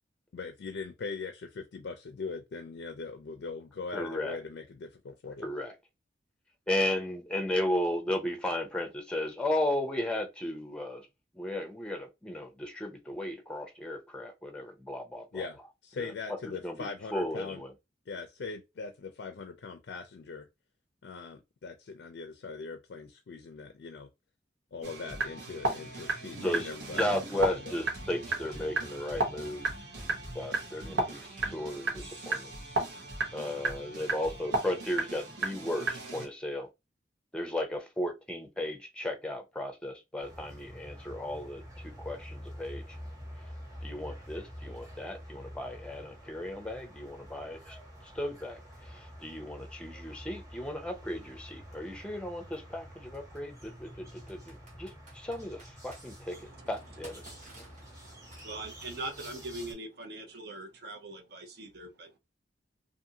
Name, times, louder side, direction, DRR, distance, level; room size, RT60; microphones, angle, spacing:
voice 1, 0.3-5.5 15.3-17.6 18.1-20.5 21.0-24.1 24.7-27.7, left 4 dB, 75° left, 0.4 m, -41 dB
voice 2, 3.9-4.4 5.4-5.7 6.7-11.1 11.4-15.5 16.0-16.1 16.5-17.7 26.4-26.7 27.0-29.7 30.3-32.5 33.3-36.7 37.3-42.8 43.8-47.8 48.1-48.6 48.9-57.2, left 1 dB, 5° left, 0.5 m, -35 dB
sound 1, 24.8-36.3, right 3 dB, 90° right, 1.0 m, -34 dB
sound 2, 40.2-59.7, equal, 20° right, 1.1 m, -48 dB
Computer keyboard, 51.5-51.6 53.1-53.4 54.3-56.0 56.7-59.3, right 2 dB, 45° right, 1.2 m, -54 dB
voice 3, 56.3-62.2, right 2 dB, 65° right, 0.6 m, -43 dB
2.6 x 2.5 x 2.7 m
head